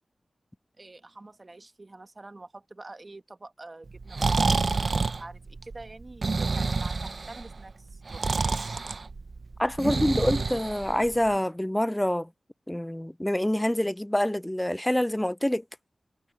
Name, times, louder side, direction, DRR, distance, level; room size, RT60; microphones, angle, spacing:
voice 1, 0.8-8.7 9.8-10.6, right 2 dB, 40° right, 1.4 m, -46 dB
Breathing, 3.9-11.3, right 4 dB, 60° right, 0.6 m, -28 dB
voice 2, 9.6-12.3 12.7-15.6, left 1 dB, 10° left, 0.4 m, -26 dB
wide cardioid pair, 65°, 0 cm